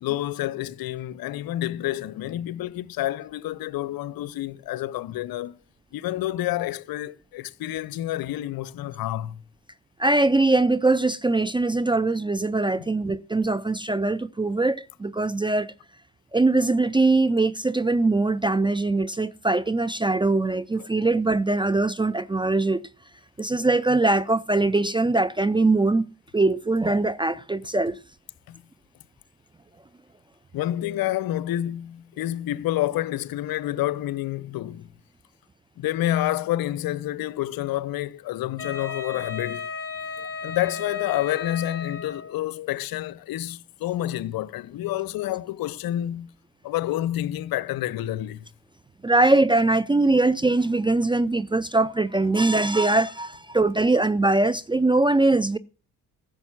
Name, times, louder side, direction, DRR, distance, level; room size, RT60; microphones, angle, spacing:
voice 1, 0.0-5.6 5.9-9.4 12.8-12.9 20.8-20.9 28.5-28.6 30.5-34.9 35.8-39.7 40.4-46.3 46.6-48.5, left 14 dB, 50° left, 0.8 m, -29 dB
voice 2, 10.0-15.7 16.3-22.8 23.4-26.0 26.3-28.0 49.0-55.6, right 2 dB, 10° right, 0.5 m, -22 dB
Wind instrument woodwind instrument, 38.6-42.4, left 5 dB, 30° left, 2.4 m, -35 dB
15.0 x 6.6 x 6.0 m
figure-of-eight pair, 45°, 47 cm